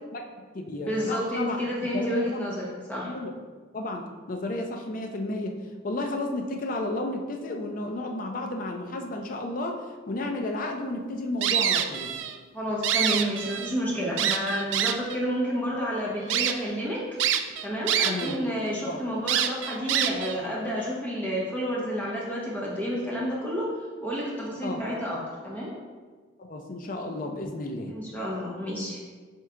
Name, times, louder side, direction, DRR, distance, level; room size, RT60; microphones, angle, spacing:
voice 1, 0.0-1.6 1.9-2.3 2.9-3.3 3.7-5.6 5.8-12.1 18.0-18.4 18.9-19.0 24.6-24.8 26.4-27.9, left 2 dB, 45° left, 3 dB, 0.5 m, -32 dB
voice 2, 0.9-3.1 12.5-17.1 17.6-23.7 24.0-25.2 25.4-25.7 27.9-29.0, equal, 10° left, -6 dB, 1.0 m, -30 dB
sound 1, 11.4-12.3 12.7-13.7 14.2-15.2 15.7-15.8 16.3-16.5 17.2-18.4 18.7-18.8 19.3-20.4, right 9 dB, 70° right, 0.3 m, -26 dB
4.4 x 3.3 x 3.6 m, 1.4 s
head